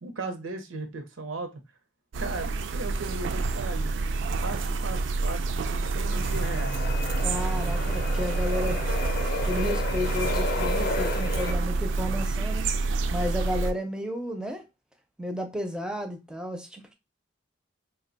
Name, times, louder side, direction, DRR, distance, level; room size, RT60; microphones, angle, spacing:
voice 1, 0.0-1.5 2.2-4.0 4.4-5.4 5.9-6.8, right 3 dB, 90° right, 0.7 m, -36 dB
Garden Bees, 2.1-13.7, right 3 dB, 70° right, 0.3 m, -28 dB
sound 1, 6.1-11.5, left 3 dB, 50° left, 0.5 m, -33 dB
voice 2, 7.2-8.8 9.4-12.7 13.1-14.6 15.2-16.9, left 1 dB, 5° right, 0.4 m, -32 dB
2.7 x 2.2 x 3.8 m
head